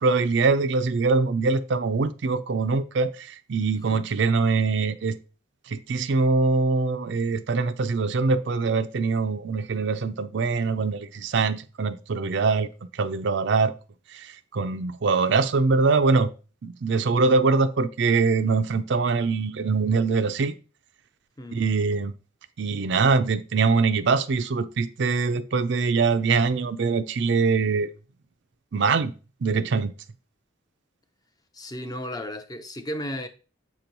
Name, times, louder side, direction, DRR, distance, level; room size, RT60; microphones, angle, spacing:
voice 1, 0.0-5.2 5.7-13.7 14.1-16.3 16.6-20.5 21.5-22.1 22.6-27.9 28.7-29.1 29.4-29.9, right 4 dB, 55° right, 0.4 m, -23 dB
voice 2, 31.5-33.3, equal, 20° left, 0.5 m, -34 dB
7.4 x 3.0 x 5.2 m
head